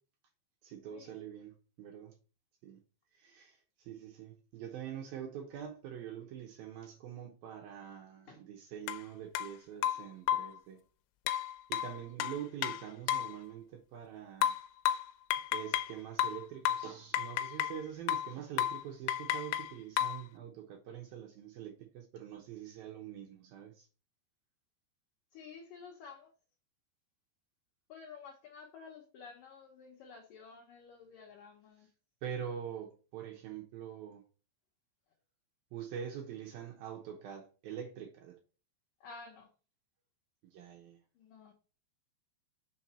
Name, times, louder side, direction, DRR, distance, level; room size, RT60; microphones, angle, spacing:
voice 1, 0.6-1.5 1.8-2.1 2.6-2.8 3.1-10.8 11.7-14.6 15.5-23.9 32.2-34.2 35.7-38.4 40.4-41.0, right 9 dB, 75° right, 2.3 m, -44 dB
sound 1, 8.9-9.0 9.4-9.5 9.8-10.6 11.3-13.4 14.4-15.9 16.2-17.8 18.1-18.3 18.6-18.8 19.1-20.2, left 11 dB, 90° left, 3.0 m, -33 dB
voice 2, 25.3-26.3 27.9-31.9 39.0-39.5 41.1-41.5, left 5 dB, 70° left, 2.1 m, -52 dB
6.2 x 4.4 x 4.3 m
omnidirectional pair, 5.4 m